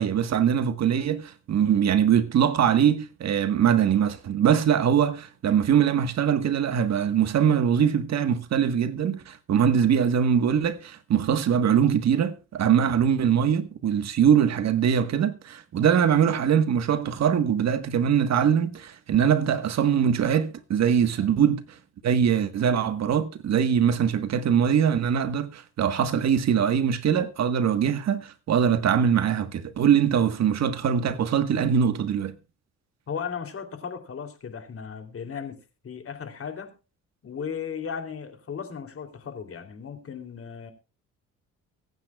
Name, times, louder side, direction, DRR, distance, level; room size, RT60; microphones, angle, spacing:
voice 1, 0.0-21.8 22.0-32.4, right 8 dB, 60° right, 1.4 m, -22 dB
voice 2, 33.1-35.6 35.8-36.7 37.2-40.7, left 7 dB, 50° left, 3.1 m, -36 dB
23.5 x 9.4 x 2.3 m
cardioid pair, 90°, 30 cm